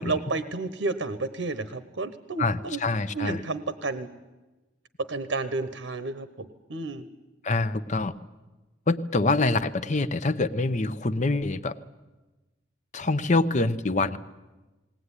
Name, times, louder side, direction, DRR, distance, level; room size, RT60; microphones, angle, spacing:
voice 1, 0.0-2.8 3.1-4.1 5.1-7.0, right 3 dB, 75° right, 12 dB, 1.1 m, -31 dB
voice 2, 2.4-3.4 7.4-8.1 8.9-11.7 12.9-14.2, left 3 dB, 40° left, 12 dB, 0.8 m, -25 dB
20.0 x 18.5 x 9.8 m, 1.1 s
head